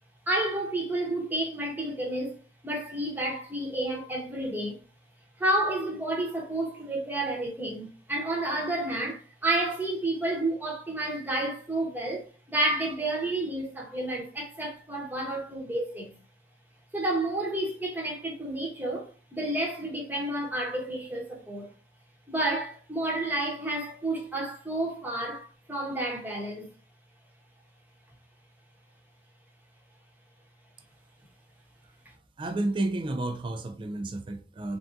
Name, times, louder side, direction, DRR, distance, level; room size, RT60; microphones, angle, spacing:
voice 1, 0.3-2.4 2.6-4.8 5.4-16.1 16.9-21.7 22.3-26.7, right 1 dB, 10° right, 0.9 m, -30 dB
voice 2, 32.4-34.8, right 2 dB, 30° right, 0.3 m, -31 dB
3.5 x 2.6 x 2.4 m
head